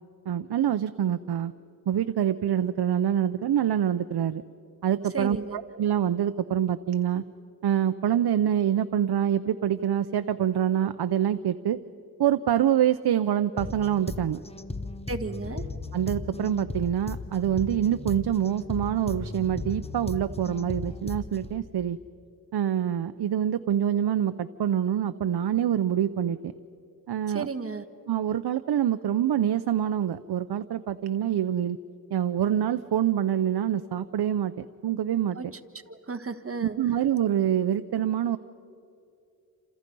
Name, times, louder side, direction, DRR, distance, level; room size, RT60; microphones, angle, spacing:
voice 1, 0.3-1.5 1.9-4.4 4.8-7.2 7.6-11.8 12.2-14.4 15.9-22.0 22.5-26.5 27.1-27.5 28.1-31.8 32.1-35.4 36.6-38.4, right 10 dB, 80° right, 10 dB, 0.6 m, -26 dB
voice 2, 5.1-5.6 15.1-15.6 27.3-27.9 35.3-35.5 35.9-36.8, right 4 dB, 35° right, 7 dB, 1.4 m, -33 dB
sound 1, 13.6-21.6, left 3 dB, 15° left, 1.0 m, -36 dB
28.5 x 27.5 x 5.4 m, 2.5 s
wide cardioid pair, 75°, 39 cm